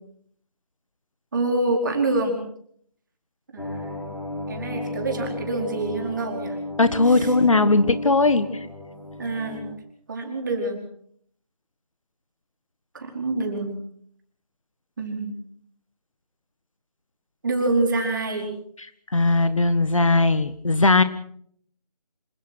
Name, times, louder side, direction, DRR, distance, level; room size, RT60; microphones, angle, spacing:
voice 1, 1.3-2.4 3.5-4.0 4.5-6.6 7.1-7.3 9.2-9.6 10.1-10.8 12.9-13.8 15.0-15.4 17.4-18.5, right 2 dB, 30° right, 3 dB, 4.6 m, -26 dB
sound 1, 3.6-9.7, left 2 dB, 75° left, 7.4 m, -34 dB
voice 2, 6.8-8.7 19.1-21.0, left 3 dB, 55° left, 13 dB, 1.5 m, -19 dB
27.0 x 16.0 x 6.3 m, 0.63 s
figure-of-eight pair, 160°, 20 cm